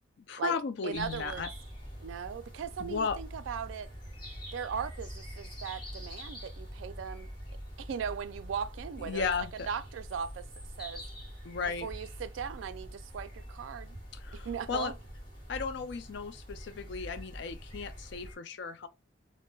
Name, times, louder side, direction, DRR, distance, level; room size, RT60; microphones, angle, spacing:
voice 1, 0.3-1.5 2.8-3.2 9.0-9.7 11.4-11.9 14.1-14.9 15.5-18.9, left 5 dB, 60° left, 0.4 m, -35 dB
voice 2, 0.8-1.5 2.0-3.9 4.5-7.3 7.8-9.3 9.5-10.4 10.8-11.0 11.8-14.0 14.4-14.9, right 7 dB, 75° right, 0.3 m, -38 dB
sound 1, 0.9-18.4, equal, 25° left, 1.3 m, -45 dB
2.2 x 2.0 x 3.1 m
head